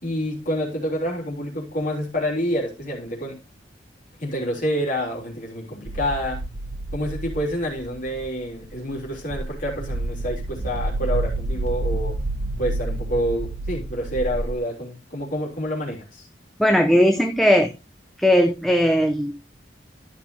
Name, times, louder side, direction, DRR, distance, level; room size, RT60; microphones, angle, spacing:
voice 1, 0.0-3.4 4.2-6.4 6.9-12.2 12.6-16.3, equal, 45° left, 3.7 m, -28 dB
sound 1, 5.9-14.6, right 1 dB, 65° right, 0.8 m, -29 dB
voice 2, 16.6-17.7 18.2-19.5, equal, ahead, 0.6 m, -18 dB
13.0 x 6.0 x 3.2 m
head